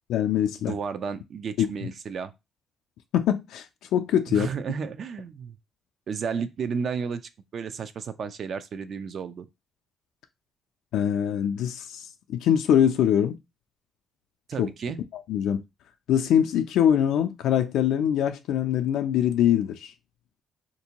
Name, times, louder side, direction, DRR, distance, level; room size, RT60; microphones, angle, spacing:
voice 1, 0.1-0.7 1.6-1.9 3.1-3.7 3.9-4.5 10.9-13.4 14.6-14.7 15.3-15.6 16.1-19.9, left 9 dB, 85° left, 0.3 m, -23 dB
voice 2, 0.6-2.3 4.3-5.6 6.1-9.5 14.5-15.0, right 6 dB, 60° right, 0.4 m, -32 dB
3.4 x 2.6 x 2.9 m
cardioid pair, 90°, 0 cm